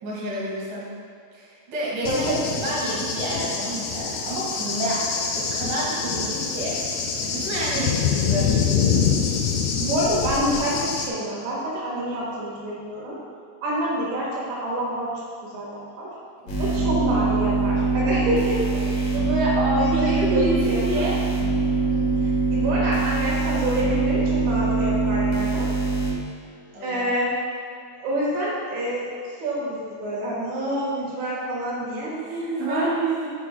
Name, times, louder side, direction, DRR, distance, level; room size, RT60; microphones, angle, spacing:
voice 1, 0.0-0.9 1.3-6.9 7.2-8.5 16.4-16.5 18.4-18.6 18.9-19.3 19.9-21.1 26.7-27.1 32.0-33.3, right 1 dB, 55° right, -6 dB, 2.8 m, -29 dB
voice 2, 2.0-2.4 3.1-3.2 7.7-7.9 9.8-13.2 13.6-15.1 15.4-16.1 16.6-21.1 21.8-25.7 26.8-27.3 28.0-29.1 29.4-32.1 32.6-32.9, right 1 dB, 90° right, -5 dB, 3.9 m, -27 dB
Cricket / Thunder, 2.1-11.1, left 6 dB, 80° left, 2.7 m, -25 dB
sound 1, 16.5-26.1, right 3 dB, 65° left, 2.7 m, -23 dB
12.0 x 6.2 x 2.2 m, 2.4 s
omnidirectional pair, 4.9 m